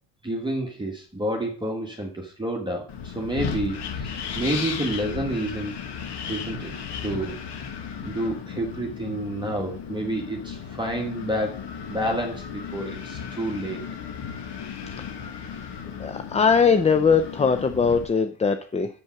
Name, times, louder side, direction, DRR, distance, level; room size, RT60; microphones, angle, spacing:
voice 1, 0.2-5.7 6.3-6.7 7.0-7.3 8.0-11.6 11.9-13.8, right 1 dB, 10° right, 0 dB, 1.2 m, -29 dB
Wind, 2.9-18.0, left 7 dB, 60° left, 1.4 m, -35 dB
voice 2, 16.0-18.9, left 5 dB, 15° left, 9 dB, 0.4 m, -20 dB
7.0 x 5.5 x 5.8 m, 0.42 s
cardioid pair, 105°, 45 cm